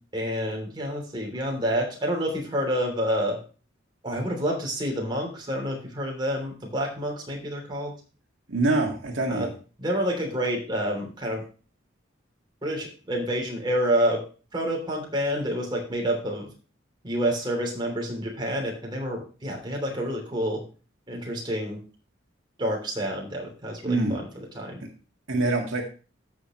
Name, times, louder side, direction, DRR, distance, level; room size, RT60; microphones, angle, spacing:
voice 1, 0.1-3.4 4.0-7.9 9.3-9.5 9.8-11.4 12.6-14.2 14.5-16.5 17.0-20.6 21.1-21.8 22.6-24.3 24.5-24.8, equal, 25° right, 0 dB, 3.1 m, -28 dB
voice 2, 8.5-9.5 23.8-24.2 25.3-25.8, right 2 dB, 75° right, 1 dB, 1.9 m, -24 dB
14.0 x 6.4 x 3.1 m, 0.36 s
head